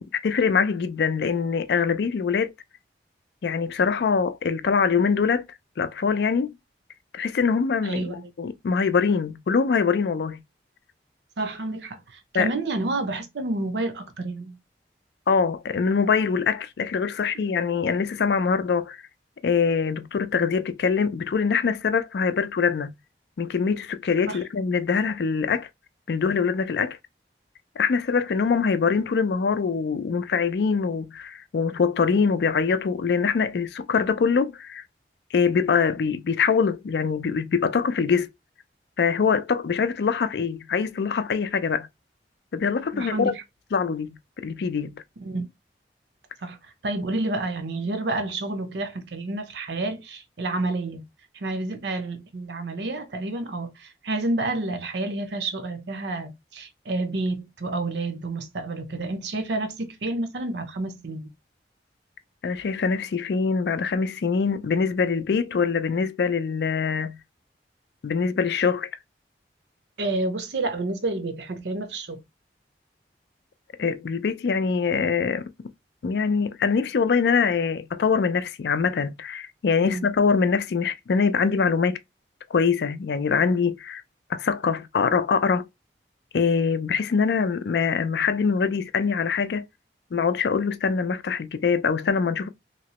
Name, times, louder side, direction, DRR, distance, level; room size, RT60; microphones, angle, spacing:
voice 1, 0.1-2.5 3.4-5.5 5.8-6.5 7.1-10.4 12.3-12.5 15.3-19.0 19.4-22.9 23.4-25.7 26.1-27.0 27.8-34.8 35.3-38.3 39.0-41.9 42.5-43.3 43.7-45.0 62.4-67.2 68.0-68.9 73.8-75.5 76.0-82.0 82.5-84.0 84.3-85.7 86.3-89.7 90.1-92.5, left 5 dB, 70° left, 0.4 m, -23 dB
voice 2, 7.8-8.2 11.4-14.6 24.3-24.4 42.9-43.4 45.2-45.4 46.4-46.6 46.8-51.0 51.3-61.3 70.0-72.2 79.8-80.0, right 2 dB, 80° right, 0.7 m, -29 dB
3.0 x 2.9 x 2.9 m
head